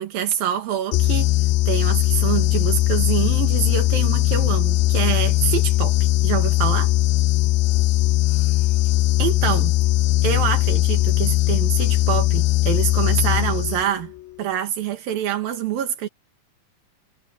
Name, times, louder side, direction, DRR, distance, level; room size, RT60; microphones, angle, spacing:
voice 1, 0.0-1.3 1.7-6.0 6.2-6.9 8.3-8.7 9.2-9.7 10.2-14.1 14.4-16.1, right 10 dB, 85° right, 3.5 m, -25 dB
sound 1, 0.9-14.1, left 16 dB, 85° left, 2.4 m, -19 dB
omnidirectional pair, 4.0 m